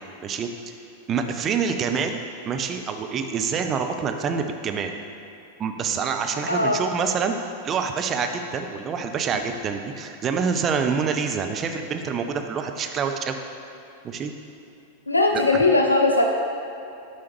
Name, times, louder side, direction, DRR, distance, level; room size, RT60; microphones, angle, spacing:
voice 1, 0.2-0.7 1.1-5.0 5.6-7.4 7.6-13.4 14.0-14.3 15.3-15.5, right 6 dB, 30° right, 6 dB, 0.4 m, -26 dB
voice 2, 6.5-6.8 15.1-16.2, left 2 dB, 80° left, 2 dB, 0.3 m, -19 dB
6.9 x 4.8 x 3.0 m, 2.8 s
figure-of-eight pair, 90°, 0 cm